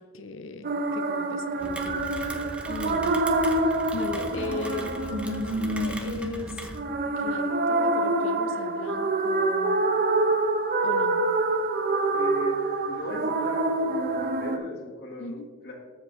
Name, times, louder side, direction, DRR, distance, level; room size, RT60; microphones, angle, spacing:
voice 1, 0.0-2.4 2.7-3.1 3.9-6.6 7.2-9.8 10.8-11.2 15.2-15.5, left 3 dB, 75° left, 9 dB, 0.6 m, -38 dB
sound 1, 0.6-14.6, right 2 dB, 50° right, 0.6 m, -26 dB
Rain, 1.6-6.8, right 1 dB, 5° right, 0.6 m, -39 dB
voice 2, 12.1-12.6 12.9-13.9 14.4-15.7, left 2 dB, 55° left, -3 dB, 1.5 m, -38 dB
14.0 x 5.1 x 3.0 m, 1.4 s
head